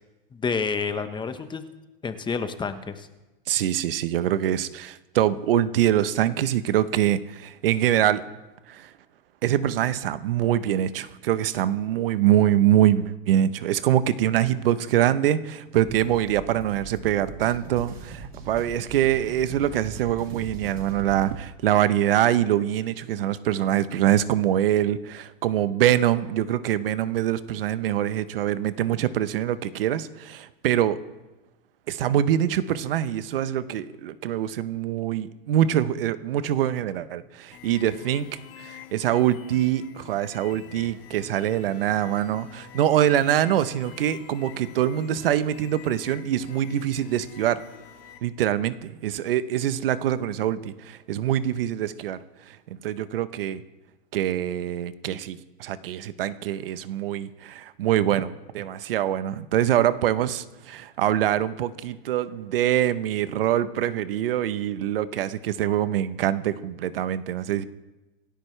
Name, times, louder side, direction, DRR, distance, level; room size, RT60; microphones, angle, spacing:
voice 1, 0.3-1.6 2.0-3.1, left 5 dB, 15° left, 9 dB, 1.2 m, -29 dB
voice 2, 3.5-8.2 8.7-8.9 9.4-31.0 31.9-38.2 38.6-47.6 48.2-52.2 52.5-52.6 52.8-53.6 54.1-67.6, right 11 dB, 70° right, 14 dB, 1.0 m, -24 dB
sound 1, 15.8-21.4, right 4 dB, 30° right, 6.2 m, -41 dB
sound 2, 37.5-48.2, left 10 dB, 65° left, 3.1 m, -46 dB
27.5 x 12.0 x 3.4 m, 1.1 s
hypercardioid pair, 115°, 29 cm